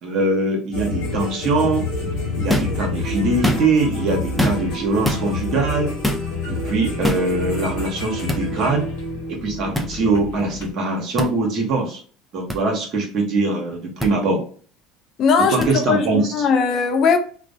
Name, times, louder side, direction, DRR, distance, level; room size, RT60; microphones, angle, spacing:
voice 1, 0.0-1.9 2.4-6.0 6.5-8.8 9.3-12.0 12.3-14.4 15.4-16.2, right 3 dB, 55° right, 0.8 m, -22 dB
sound 1, 0.7-10.7, left 2 dB, 70° left, 1.0 m, -28 dB
sound 2, 2.5-2.8 3.3-3.9 4.4-4.8 5.0-5.2 6.0-6.3 7.0-7.3 8.3-8.4 9.7-9.9 11.2-11.3 12.5-12.6 14.0-14.1 15.6-15.7, left 1 dB, ahead, 0.5 m, -22 dB
voice 2, 15.2-17.2, left 5 dB, 50° left, 0.5 m, -19 dB
2.4 x 2.0 x 2.6 m
hypercardioid pair, 80°, 0 cm